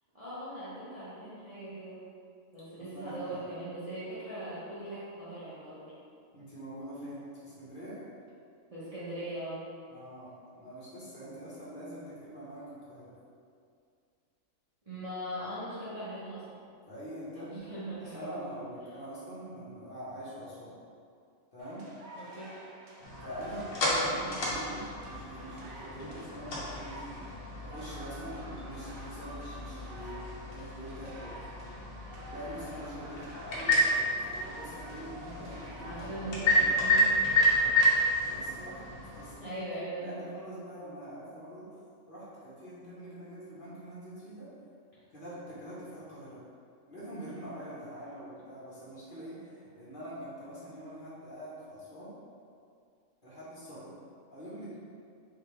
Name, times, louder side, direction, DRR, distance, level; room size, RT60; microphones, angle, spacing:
voice 1, 0.1-2.0 2.5-5.9 8.7-9.6 14.9-16.4 17.3-18.5 22.1-22.5 24.0-24.3 35.8-37.1 39.4-40.6, right 1 dB, 30° right, -12 dB, 0.9 m, -40 dB
voice 2, 2.9-3.4 6.3-8.0 9.9-13.1 16.9-17.6 18.1-20.7 21.5-21.8 23.2-27.2 27.6-30.2 30.5-31.5 32.2-37.0 38.2-38.8 39.2-39.7 40.0-41.7 42.1-44.5 45.1-46.4 46.9-52.1 53.2-54.0 54.3-54.8, equal, 40° left, -9 dB, 1.3 m, -44 dB
sound 1, 21.6-37.1, right 1 dB, 85° right, 1.1 m, -49 dB
sound 2, 23.0-39.3, equal, 80° left, 1.3 m, -31 dB
4.0 x 3.3 x 3.2 m, 2.3 s
omnidirectional pair, 1.4 m